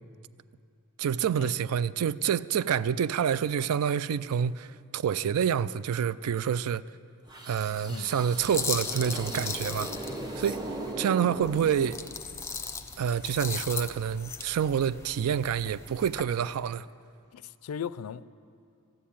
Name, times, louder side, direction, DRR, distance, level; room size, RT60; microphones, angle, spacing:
voice 1, 1.0-6.8 7.5-9.9 10.4-10.6 11.0-12.0 13.0-16.9, right 8 dB, 80° right, 0.3 m, -27 dB
sound 1, 7.3-12.4, right 1 dB, 20° right, 1.0 m, -38 dB
sound 2, 8.4-10.9 11.4-16.2, left 5 dB, 10° left, 0.6 m, -38 dB
voice 2, 17.3-18.3, left 8 dB, 80° left, 0.4 m, -37 dB
13.5 x 9.4 x 8.6 m
head